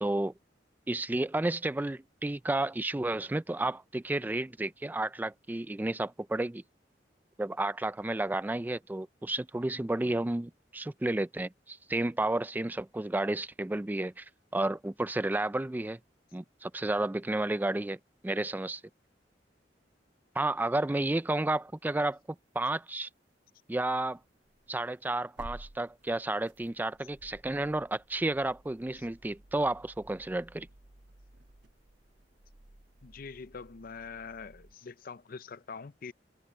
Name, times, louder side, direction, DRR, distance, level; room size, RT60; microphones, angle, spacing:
voice 1, 0.0-0.3 0.9-6.6 7.4-14.3 14.5-16.0 16.3-18.0 18.2-18.8 20.4-22.2 22.6-23.1 23.7-24.2 24.7-30.7, right 2 dB, 10° right, 0.3 m, -31 dB
sound 1, 22.0-22.1 22.8-22.9 24.1-34.7, right 1 dB, 70° right, 1.3 m, -55 dB
voice 2, 33.0-36.1, left 5 dB, 55° left, 0.6 m, -44 dB
head